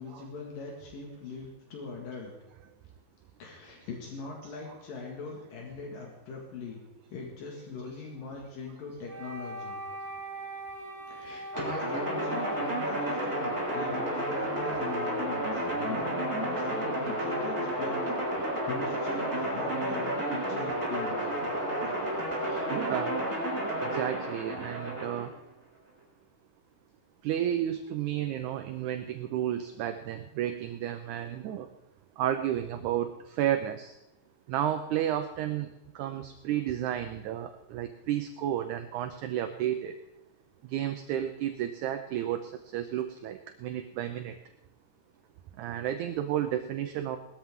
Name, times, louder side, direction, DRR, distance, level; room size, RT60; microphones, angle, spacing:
voice 1, 0.0-2.3 3.4-6.8 7.1-9.8 11.1-21.3 22.1-22.8, left 4 dB, 75° left, -1 dB, 3.7 m, -41 dB
Wind instrument woodwind instrument, 9.1-17.1, right 1 dB, 25° right, 7.5 m, -43 dB
sound 1, 11.5-25.3, right 1 dB, 5° right, 5.1 m, -31 dB
voice 2, 22.7-23.2 23.8-25.3 27.2-31.7 32.2-34.0 34.5-35.7 36.0-39.9 40.6-44.4 45.6-47.2, right 11 dB, 75° right, 7 dB, 1.9 m, -32 dB
20.0 x 13.5 x 3.7 m, 0.93 s
omnidirectional pair, 4.0 m